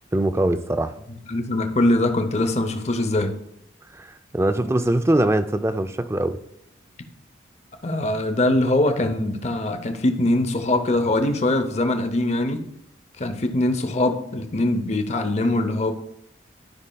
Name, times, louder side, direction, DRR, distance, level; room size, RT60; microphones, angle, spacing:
voice 1, 0.1-0.9 3.9-6.4, right 1 dB, 15° right, 0.3 m, -22 dB
voice 2, 1.1-3.4 7.8-12.7 13.2-15.9, left 1 dB, 35° left, 0.7 m, -22 dB
13.0 x 5.4 x 2.3 m
head